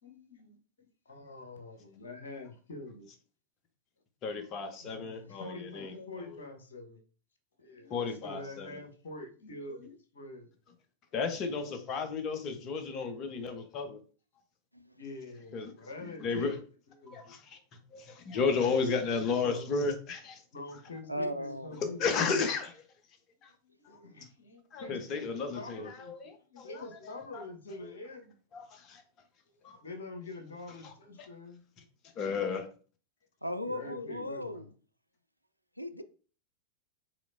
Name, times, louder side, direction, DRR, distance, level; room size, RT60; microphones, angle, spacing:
voice 1, 0.0-3.1 5.2-7.0 7.6-10.5 11.6-11.7 15.0-16.5 17.0-17.2 19.0-19.1 19.4-19.9 20.5-22.0 23.6-25.2 25.5-28.4 29.6-31.6 33.6-34.7, left 2 dB, 65° left, 1.1 m, -45 dB
voice 2, 4.2-6.4 7.9-8.7 11.1-14.0 15.5-15.7 16.0-16.6 17.1-17.6 17.9-20.4 21.8-22.9 23.4-23.5 24.7-26.8 27.2-27.4 28.5-29.0 29.6-29.8 30.8-30.9 32.2-32.7, left 5 dB, 35° left, 0.9 m, -33 dB
voice 3, 21.1-21.8 33.4-34.7 35.8-36.0, left 1 dB, 90° left, 0.4 m, -37 dB
4.8 x 4.1 x 2.6 m
figure-of-eight pair, 90°, 0 cm